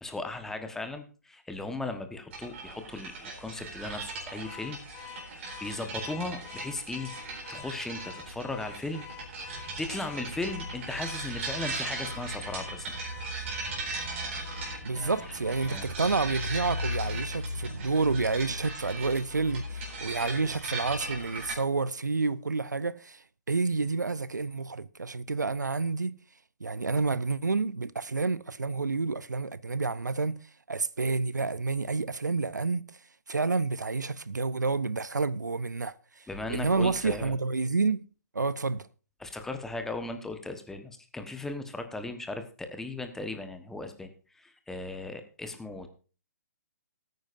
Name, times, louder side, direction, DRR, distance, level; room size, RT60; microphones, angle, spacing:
voice 1, 0.0-4.8 5.2-7.2 7.5-9.0 9.3-12.9 14.9-15.2 15.7-15.9 36.3-37.3 39.2-45.9, left 2 dB, 5° left, 1.2 m, -37 dB
sound 1, 2.3-21.5, right 1 dB, 45° right, 4.0 m, -37 dB
Car / Alarm, 4.4-15.9, left 12 dB, 25° left, 1.4 m, -48 dB
voice 2, 14.8-26.2 26.6-30.4 30.7-32.9 33.3-35.9 36.5-38.0 38.3-38.9, right 4 dB, 90° right, 0.6 m, -29 dB
19.0 x 9.2 x 2.6 m
figure-of-eight pair, 135°, 9 cm